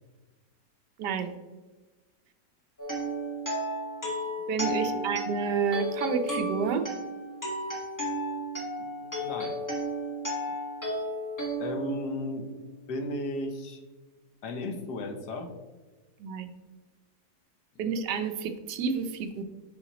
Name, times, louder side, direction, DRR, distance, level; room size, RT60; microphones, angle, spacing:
voice 1, 1.0-1.3 4.5-6.8 16.2-16.5 17.8-19.4, right 6 dB, 80° right, 8 dB, 1.3 m, -29 dB
sound 1, 2.8-12.7, equal, 10° left, 1.5 m, -33 dB
voice 2, 4.7-5.1 8.8-9.6 11.6-12.5 12.9-13.8 14.4-15.5, left 1 dB, 75° left, 6 dB, 1.4 m, -35 dB
8.0 x 5.7 x 2.9 m, 1.2 s
omnidirectional pair, 1.8 m